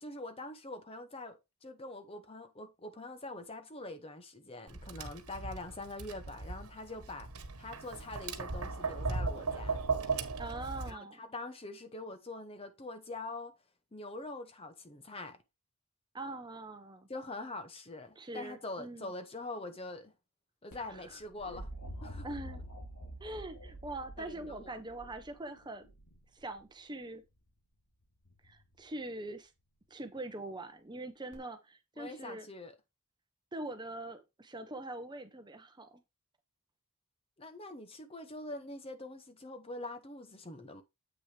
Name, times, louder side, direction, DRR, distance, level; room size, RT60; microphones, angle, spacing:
voice 1, 0.0-7.3 7.6-9.8 10.9-13.5 13.9-15.4 17.1-20.1 20.6-21.7 22.0-22.3 24.2-24.7 32.0-32.7 37.4-40.8, left 2 dB, 25° left, 0.8 m, -44 dB
Tap, 4.7-10.9, right 4 dB, 80° right, 1.2 m, -37 dB
voice 2, 10.4-11.2 16.1-17.1 18.2-19.1 20.9-21.2 22.2-22.6 23.2-25.9 26.3-27.2 28.4-29.5 29.9-32.5 33.5-36.0, right 2 dB, 20° right, 0.8 m, -43 dB
sound 1, 20.7-26.6 28.2-28.8 31.3-31.4, equal, 90° left, 2.9 m, -47 dB
8.1 x 6.1 x 3.3 m
head